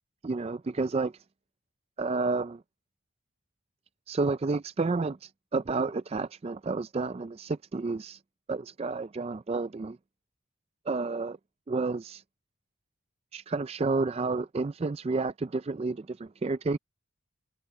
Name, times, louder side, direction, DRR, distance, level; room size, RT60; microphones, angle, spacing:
voice 1, 0.2-1.1 2.0-2.6 4.1-8.2 8.5-10.0 10.9-11.4 11.7-12.2 13.3-16.8, right 3 dB, 30° right, 0.3 m, -30 dB
head